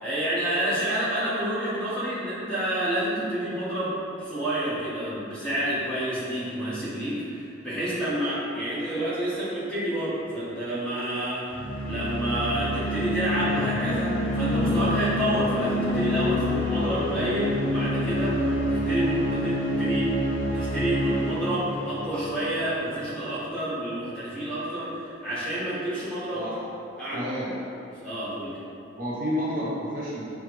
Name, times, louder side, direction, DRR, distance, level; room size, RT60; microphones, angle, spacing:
voice 1, 0.0-20.1 20.5-26.5 27.0-27.2 27.9-28.6, right 1 dB, 5° left, -13 dB, 1.2 m, -29 dB
sound 1, 11.5-23.0, left 1 dB, 65° left, 0.7 m, -27 dB
voice 2, 26.3-26.6 27.1-27.5 29.0-30.4, equal, 45° right, -7 dB, 0.6 m, -30 dB
5.8 x 2.3 x 3.1 m, 2.8 s
head